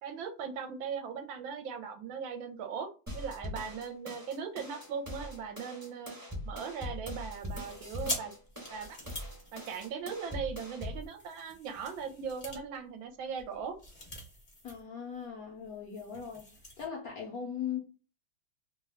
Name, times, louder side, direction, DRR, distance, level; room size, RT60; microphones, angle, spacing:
voice 1, 0.0-6.2 6.4-8.3 8.7-9.0 9.5-13.8, right 6 dB, 75° right, 1.3 m, -39 dB
sound 1, 3.1-11.1, left 1 dB, 15° right, 0.7 m, -42 dB
sound 2, 7.3-10.4 10.9-14.9 15.1-15.3 15.6-16.9, left 1 dB, 40° left, 0.5 m, -44 dB
voice 2, 14.6-16.5 16.8-17.8, left 7 dB, 65° left, 0.9 m, -39 dB
3.3 x 2.2 x 3.4 m
omnidirectional pair, 2.3 m